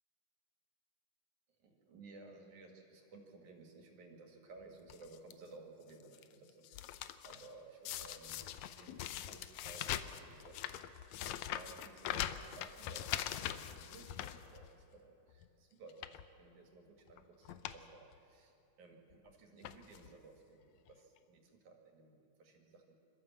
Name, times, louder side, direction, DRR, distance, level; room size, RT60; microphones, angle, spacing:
voice 1, 1.6-6.9 7.2-10.8 11.2-23.0, right 3 dB, 65° right, 2 dB, 3.4 m, -57 dB
sound 1, 4.9-5.3 5.9-6.2 6.5-7.5 7.9-15.0 15.3-15.5 15.9-16.3 17.1-17.2 17.5-17.8 18.1-18.2 19.1-19.3 19.6-20.1 20.9-21.0 21.2-21.3, left 12 dB, 75° left, 1.7 m, -42 dB
26.5 x 13.0 x 7.3 m, 2.9 s
omnidirectional pair, 3.7 m